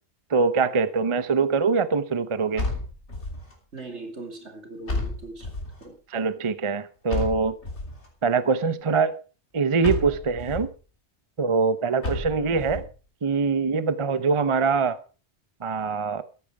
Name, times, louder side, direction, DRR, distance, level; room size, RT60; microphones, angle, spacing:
voice 1, 0.3-2.7 6.1-7.6 8.2-9.2 9.5-10.7 11.4-12.8 13.2-15.0 15.6-16.2, right 5 dB, 30° right, 0.7 m, -23 dB
sound 1, 2.6-3.5 4.9-5.8 7.1-8.1 9.8-10.7 12.0-12.9, left 2 dB, 75° left, 3.6 m, -31 dB
voice 2, 3.7-5.5 5.8-6.0 10.0-10.2, right 2 dB, 75° right, 3.0 m, -40 dB
14.0 x 10.5 x 4.8 m
omnidirectional pair, 1.2 m